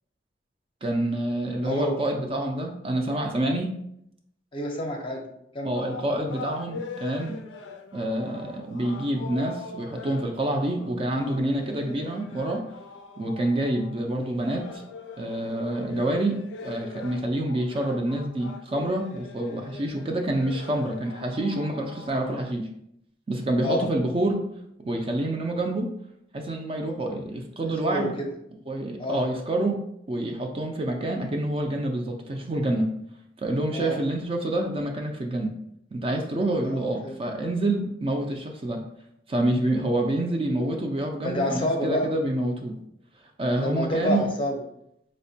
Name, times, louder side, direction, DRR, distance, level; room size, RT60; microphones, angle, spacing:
voice 1, 0.8-3.7 5.6-7.4 7.9-12.6 13.2-14.8 15.2-16.4 16.6-22.7 23.3-24.4 24.8-25.9 26.3-28.1 28.7-29.8 30.1-32.9 33.4-35.5 35.9-38.8 39.3-42.8 43.4-44.3, right 1 dB, 30° right, 2 dB, 0.4 m, -27 dB
voice 2, 1.6-2.0 4.5-5.3 5.5-5.8 19.6-19.7 23.6-23.9 27.6-28.3 29.0-29.2 33.7-34.0 36.7-37.2 40.1-40.2 41.2-42.1 43.6-44.6, left 1 dB, 30° left, 1 dB, 0.5 m, -28 dB
sound 1, 5.7-22.4, left 4 dB, 85° left, 0.4 m, -42 dB
4.9 x 2.1 x 2.7 m, 0.76 s
head